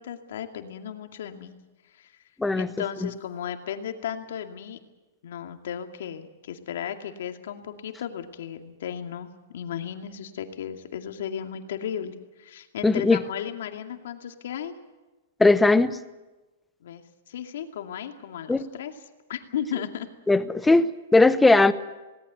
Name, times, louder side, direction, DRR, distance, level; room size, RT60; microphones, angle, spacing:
voice 1, 0.0-1.5 2.0-2.1 2.5-4.8 5.2-14.8 16.8-19.0 19.3-20.1, left 9 dB, 70° left, 6 dB, 2.3 m, -35 dB
voice 2, 12.8-13.2 15.4-16.0 18.5-18.7 20.3-21.7, left 3 dB, 5° left, 13 dB, 0.8 m, -19 dB
19.5 x 18.5 x 9.4 m, 1.1 s
hypercardioid pair, 155°, 0 cm